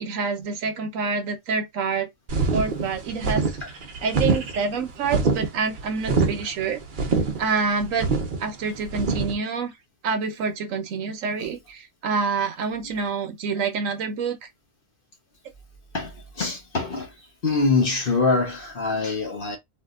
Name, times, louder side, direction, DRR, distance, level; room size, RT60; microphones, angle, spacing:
voice 1, 0.0-2.1 2.5-3.5 4.0-6.8 7.4-8.1 8.4-9.7 10.0-14.4, right 5 dB, 75° right, 1.1 m, -27 dB
sound 1, 2.3-9.3, right 4 dB, 50° right, 0.7 m, -25 dB
voice 2, 15.9-17.1 17.4-19.6, left 3 dB, 45° left, 1.0 m, -24 dB
3.5 x 2.6 x 2.4 m
omnidirectional pair, 1.4 m